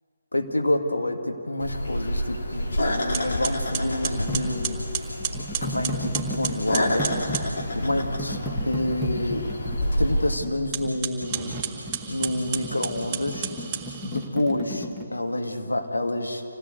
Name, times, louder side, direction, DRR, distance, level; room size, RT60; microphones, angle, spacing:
voice 1, 0.3-4.9 5.6-7.2 7.7-8.4 8.7-9.5 10.0-11.6 12.1-13.5 14.0-16.4, left 1 dB, 75° left, 3 dB, 2.2 m, -28 dB
sound 1, 1.6-10.4, left 1 dB, 60° left, 3.0 m, -28 dB
sound 2, 3.1-7.5 10.6-14.3, right 6 dB, 15° right, 1.8 m, -33 dB
sound 3, 4.3-15.1, equal, 5° left, 1.6 m, -35 dB
26.5 x 17.5 x 8.1 m, 2.5 s
figure-of-eight pair, 145°, 0 cm